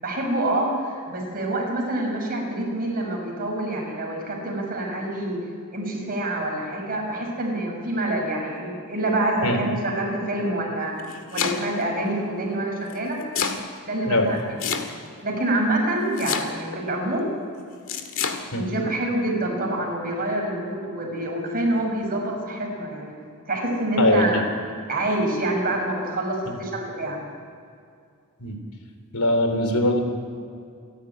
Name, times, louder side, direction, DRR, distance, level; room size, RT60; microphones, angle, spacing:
voice 1, 0.0-5.4 5.7-10.9 11.3-13.2 13.9-14.7 15.2-17.3 18.5-23.1 23.5-24.5 24.9-27.2, right 1 dB, 40° right, 0 dB, 6.2 m, -26 dB
Domestic sounds home sounds, 10.8-11.9 12.9-13.6 14.6-15.2 16.2-16.8 17.9-18.4, left 6 dB, 65° left, 2.0 m, -27 dB
voice 2, 24.0-24.4 26.5-26.6 28.4-28.6 29.1-30.0, left 1 dB, 90° left, 6 dB, 3.4 m, -21 dB
28.0 x 12.0 x 9.9 m, 2.3 s
head